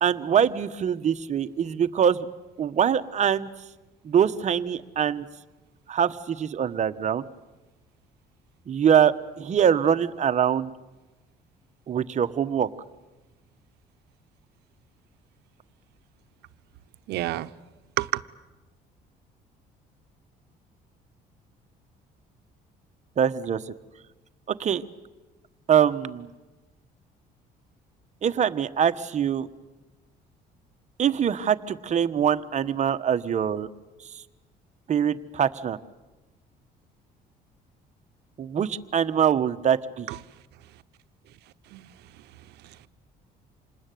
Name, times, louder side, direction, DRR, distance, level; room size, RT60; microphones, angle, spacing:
voice 1, 0.0-2.3 2.6-3.5 4.0-5.2 5.9-7.2 8.7-10.7 11.9-12.7 23.2-23.6 24.5-24.8 25.7-26.3 28.2-29.5 31.0-33.7 34.1-34.2 34.9-35.8 38.4-40.1, right 8 dB, 45° right, 1.2 m, -23 dB
voice 2, 17.1-17.5 18.0-18.2 40.1-40.2 41.7-41.9 42.6-42.9, right 16 dB, 80° right, 0.9 m, -29 dB
27.5 x 20.5 x 9.3 m
cardioid pair, 110°, 17 cm